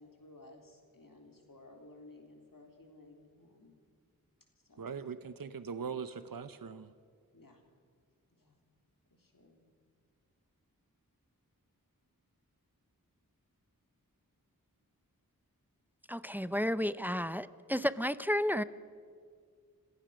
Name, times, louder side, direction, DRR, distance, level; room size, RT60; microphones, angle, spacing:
voice 1, 0.0-3.7 4.7-4.9 7.3-7.6 8.3-8.6 9.2-9.6, left 2 dB, 70° left, 2 dB, 3.4 m, -56 dB
voice 2, 4.8-6.9, right 6 dB, 70° right, 12 dB, 0.8 m, -41 dB
voice 3, 16.1-18.6, equal, 5° right, 15 dB, 0.6 m, -32 dB
26.5 x 15.5 x 6.3 m, 2.1 s
wide cardioid pair, 40°, 35 cm